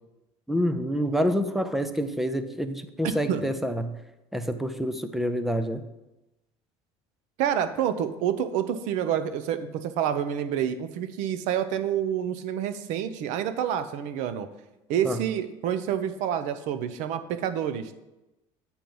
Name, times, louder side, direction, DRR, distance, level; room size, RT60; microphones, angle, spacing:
voice 1, 0.5-4.0 4.3-5.8 15.0-15.2, equal, ahead, 10 dB, 0.4 m, -27 dB
voice 2, 3.0-3.4 7.4-14.5 14.9-17.9, right 9 dB, 65° right, 10 dB, 0.7 m, -28 dB
8.8 x 4.5 x 5.4 m, 0.98 s
cardioid pair, 155°, 13 cm